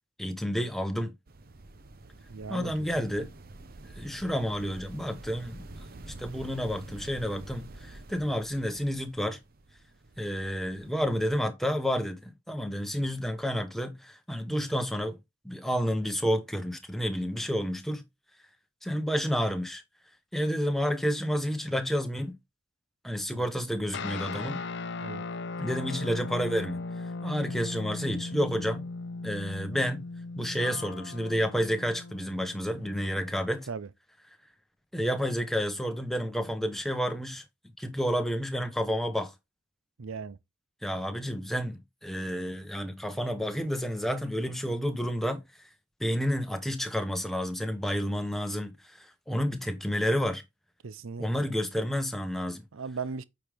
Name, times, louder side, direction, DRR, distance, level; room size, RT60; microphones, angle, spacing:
voice 1, 0.2-1.1 2.5-3.3 4.0-5.6 6.1-9.4 10.2-15.2 15.4-18.0 18.8-19.8 20.3-22.3 23.0-24.6 25.6-28.8 29.2-30.0 30.3-33.7 34.9-37.4 37.8-39.3 40.8-45.4 46.0-50.4 51.2-52.6, equal, ahead, 1.0 m, -30 dB
sound 1, 1.3-11.4, right 2 dB, 45° right, 0.8 m, -47 dB
voice 2, 2.3-3.2 23.3-23.4 25.0-25.2 33.7-33.9 40.0-40.4 50.8-51.5 52.7-53.2, right 5 dB, 85° right, 0.6 m, -38 dB
sound 2, 23.9-33.6, left 3 dB, 60° left, 0.7 m, -38 dB
8.8 x 4.9 x 3.5 m
head